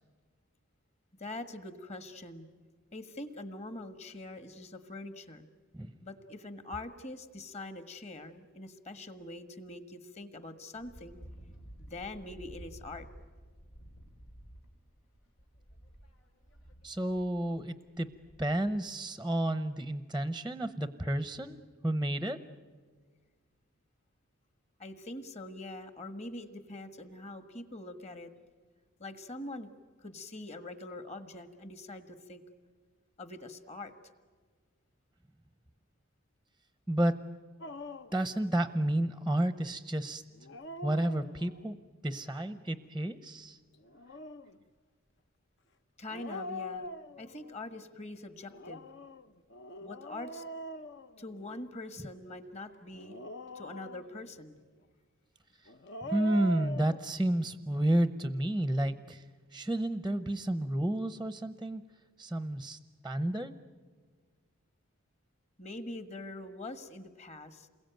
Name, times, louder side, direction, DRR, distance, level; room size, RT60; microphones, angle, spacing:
voice 1, 1.2-2.5 2.9-5.5 6.0-11.2 11.8-13.1 24.8-28.3 29.0-29.7 30.0-32.4 33.2-33.9 46.0-46.9 47.2-48.9 49.8-50.4 51.2-53.1 53.5-54.6 65.6-67.7, left 2 dB, 30° left, 9 dB, 1.5 m, -44 dB
Wind, 10.7-18.9, right 1 dB, 85° left, 3.5 m, -53 dB
voice 2, 16.8-18.1 18.4-22.4 36.9-37.2 38.1-40.2 40.8-41.8 42.0-43.6 56.0-59.2 59.5-61.8 62.2-63.5, right 1 dB, 5° right, 11 dB, 0.7 m, -31 dB
Dog, 37.6-38.2 40.3-41.7 43.8-44.6 46.1-47.6 48.5-51.7 52.9-54.3 55.7-57.0, equal, 55° left, 0.9 m, -43 dB
28.5 x 22.0 x 9.2 m, 1.5 s
head